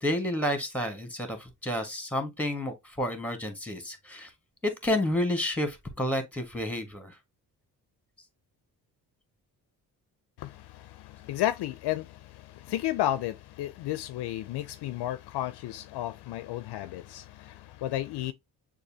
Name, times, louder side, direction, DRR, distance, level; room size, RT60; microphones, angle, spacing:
voice 1, 0.0-4.3 4.6-7.2, left 1 dB, 5° left, 1.6 m, -30 dB
voice 2, 10.4-18.3, left 13 dB, 65° left, 0.5 m, -33 dB
6.5 x 2.7 x 2.8 m
hypercardioid pair, 50°, 44 cm